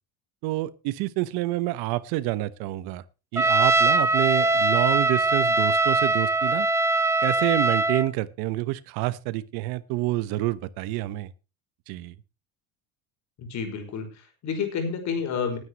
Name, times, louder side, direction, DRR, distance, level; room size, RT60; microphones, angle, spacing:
voice 1, 0.4-3.0 3.3-6.7 7.2-11.3 11.9-12.1, right 17 dB, 70° right, 16 dB, 1.1 m, -28 dB
Trumpet, 3.4-8.1, right 2 dB, 5° right, 0.6 m, -22 dB
voice 2, 13.4-15.6, left 6 dB, 45° left, 5 dB, 5.2 m, -30 dB
19.5 x 9.7 x 3.0 m, 0.31 s
cardioid pair, 145°, 40 cm